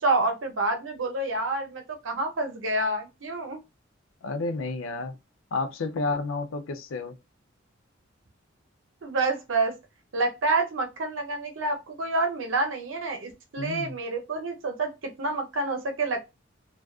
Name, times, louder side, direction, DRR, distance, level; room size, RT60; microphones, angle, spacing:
voice 1, 0.0-3.6 9.0-9.7 10.1-14.9 15.2-16.2, right 2 dB, 75° right, 0.7 m, -28 dB
voice 2, 4.2-5.2 5.5-7.2 13.6-13.9, left 3 dB, 90° left, 0.5 m, -31 dB
2.4 x 2.3 x 2.3 m
head